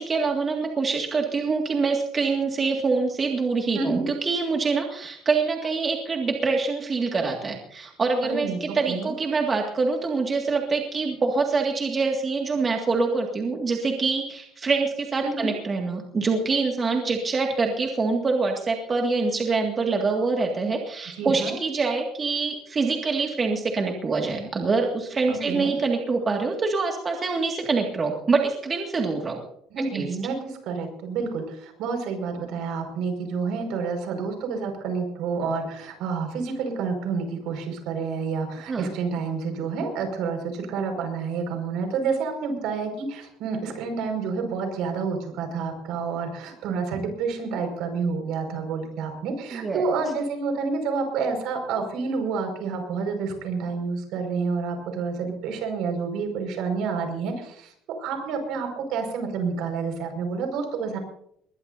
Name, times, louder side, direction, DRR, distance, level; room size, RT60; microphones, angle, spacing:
voice 1, 0.0-29.4 29.9-30.1 38.7-38.9 49.5-49.8, right 4 dB, 25° right, 1 dB, 2.1 m, -25 dB
voice 2, 3.7-4.1 8.2-9.1 15.2-15.5 21.2-21.5 25.3-25.8 29.7-57.7 58.0-61.0, right 5 dB, 70° right, 4 dB, 5.5 m, -29 dB
21.5 x 20.5 x 2.7 m, 0.70 s
cardioid pair, 150°, 0 cm